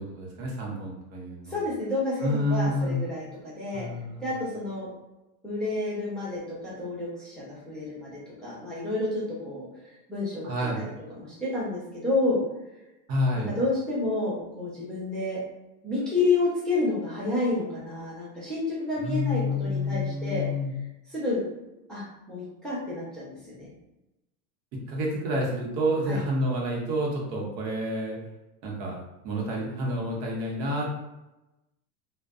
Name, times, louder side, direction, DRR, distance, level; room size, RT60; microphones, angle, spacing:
voice 1, 0.0-1.6 2.2-3.0 3.7-4.3 10.4-10.8 13.1-13.6 19.0-20.7 24.7-28.2 28.6-29.0 29.2-30.9, left 1 dB, 80° right, -2 dB, 1.0 m, -29 dB
voice 2, 1.5-3.9 4.2-4.9 5.4-12.4 13.6-15.4 15.8-20.4 21.1-21.4 21.9-23.7 26.1-26.2, left 2 dB, ahead, -9 dB, 0.6 m, -30 dB
2.4 x 2.2 x 2.3 m, 0.99 s
supercardioid pair, 120°, 49 cm